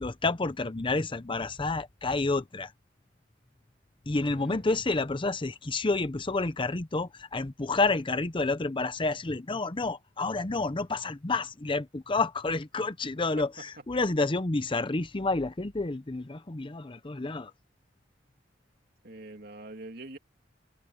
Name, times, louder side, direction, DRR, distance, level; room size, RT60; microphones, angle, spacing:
voice 1, 0.0-2.7 4.1-17.5, left 3 dB, 30° left, 0.7 m, -29 dB
voice 2, 4.3-4.6 13.4-13.5 19.0-20.2, right 2 dB, 60° right, 2.6 m, -44 dB
head